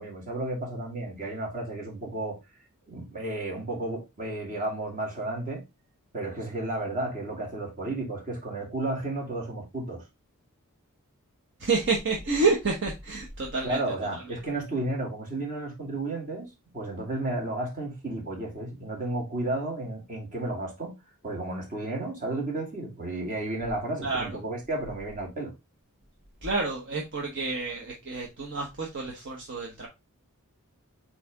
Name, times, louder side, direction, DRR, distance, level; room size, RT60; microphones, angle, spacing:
voice 1, 0.0-2.4 2.9-5.6 6.1-10.0 13.6-16.5 16.7-20.9 21.2-25.5, right 2 dB, 40° right, 2.5 m, -32 dB
voice 2, 11.6-13.8 14.1-14.2 24.0-24.4 26.4-29.9, right 3 dB, 55° right, 1.3 m, -29 dB
8.3 x 3.4 x 3.6 m
head